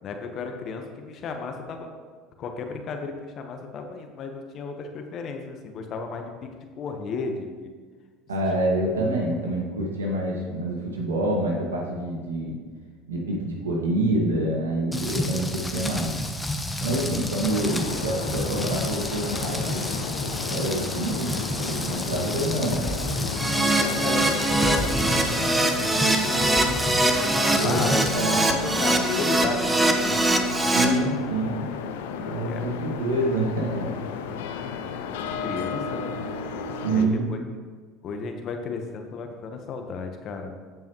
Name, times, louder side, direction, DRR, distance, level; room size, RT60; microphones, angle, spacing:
voice 1, 0.0-1.9 2.4-7.7 16.8-17.3 23.6-24.3 24.6-27.9 28.4-30.2 30.6-31.0 32.5-32.7 34.3-36.1 36.9-37.4 38.0-40.5, left 4 dB, 50° left, 4 dB, 1.1 m, -34 dB
voice 2, 8.3-12.6 13.1-16.1 16.8-19.8 20.5-22.9 27.6-28.5 30.7-31.7 32.2-33.9 36.8-37.3, right 1 dB, 90° right, -1 dB, 1.8 m, -27 dB
Rain, 14.9-28.1, left 1 dB, 10° left, 1.0 m, -30 dB
sound 1, 17.5-37.1, left 6 dB, 75° left, 0.6 m, -34 dB
Keyboard (musical), 23.4-30.9, right 2 dB, 15° right, 1.1 m, -23 dB
15.0 x 5.5 x 3.1 m, 1.5 s
hypercardioid pair, 75°, 0 cm